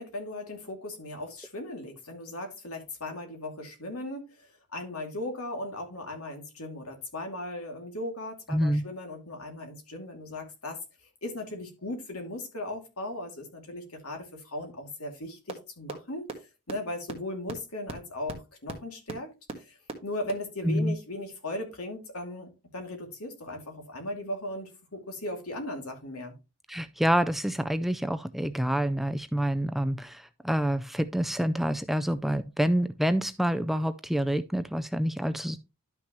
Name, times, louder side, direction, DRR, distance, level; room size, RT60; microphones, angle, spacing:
voice 1, 0.0-10.8 11.2-16.3 16.7-19.3 19.6-26.3, left 1 dB, 70° left, 2.6 m, -37 dB
voice 2, 8.5-8.8 20.6-21.0 26.7-35.6, equal, ahead, 0.3 m, -27 dB
sound 1, 15.5-15.6 15.9-16.0 16.3-16.4 16.7-16.8 17.1-17.2 17.5-17.6 17.9-18.0 18.3-18.4 18.7-18.8 19.1-19.2 19.5-19.6 19.9-20.0 20.3-20.4, right 2 dB, 25° right, 1.5 m, -35 dB
11.5 x 5.9 x 3.0 m
head